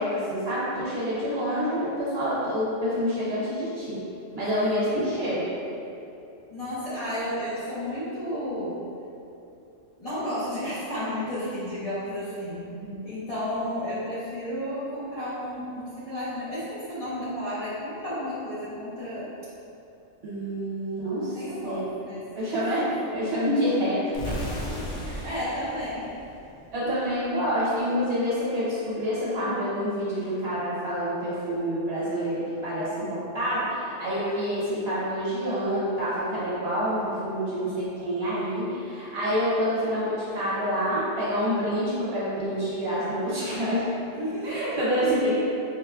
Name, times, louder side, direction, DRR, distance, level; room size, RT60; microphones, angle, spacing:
voice 1, 0.0-4.0 4.3-5.4 6.9-7.0 12.8-13.0 20.2-21.4 21.6-24.3 25.0-25.4 26.7-44.1 44.4-45.3, equal, 55° right, -9 dB, 1.1 m, -27 dB
voice 2, 6.5-8.8 10.0-12.7 13.0-19.3 21.3-22.6 24.6-24.9 25.2-26.1 26.8-27.0 44.1-44.6, equal, 40° left, -13 dB, 0.6 m, -32 dB
sound 1, 24.1-27.0, equal, 80° left, 1.0 m, -35 dB
4.8 x 2.1 x 2.3 m, 2.8 s
omnidirectional pair, 1.3 m